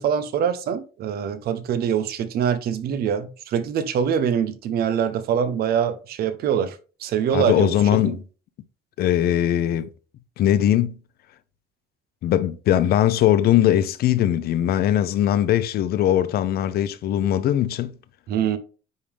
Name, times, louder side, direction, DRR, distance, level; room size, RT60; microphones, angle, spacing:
voice 1, 0.0-8.2 18.3-18.6, right 8 dB, 65° right, 0.9 m, -24 dB
voice 2, 7.3-8.2 9.0-9.9 10.4-10.9 12.2-17.9, left 11 dB, 65° left, 0.7 m, -20 dB
9.6 x 3.7 x 3.5 m
cardioid pair, 110°, 17 cm